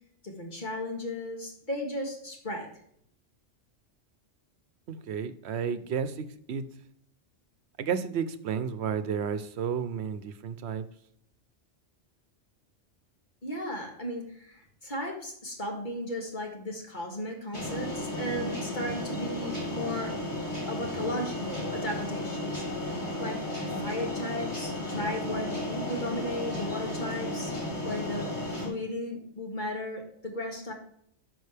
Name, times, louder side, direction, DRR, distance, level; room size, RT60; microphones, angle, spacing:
voice 1, 0.2-2.7 13.4-20.1 20.7-22.6 23.2-27.5 27.8-28.3 28.6-30.7, left 1 dB, 40° left, 1 dB, 2.2 m, -35 dB
voice 2, 4.9-6.6 7.8-10.9, right 7 dB, 70° right, 12 dB, 0.9 m, -32 dB
sound 1, 17.5-28.7, left 1 dB, 25° left, 2.6 m, -34 dB
11.0 x 6.3 x 3.4 m, 0.70 s
omnidirectional pair, 1.2 m